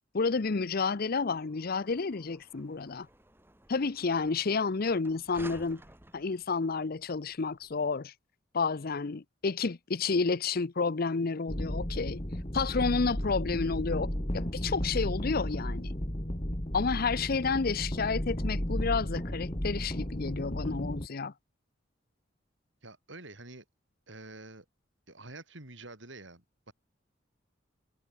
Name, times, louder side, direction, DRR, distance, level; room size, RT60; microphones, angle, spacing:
voice 1, 0.1-3.1 3.7-5.8 6.1-8.1 8.5-12.2 12.5-15.9 16.7-21.3, left 4 dB, 50° left, 0.7 m, -30 dB
sound 1, 1.1-7.8, right 1 dB, 10° right, 7.9 m, -54 dB
sound 2, 11.5-21.1, equal, 30° left, 3.1 m, -34 dB
voice 2, 22.8-23.6 24.1-24.7 25.1-26.7, right 2 dB, 70° right, 5.6 m, -47 dB
head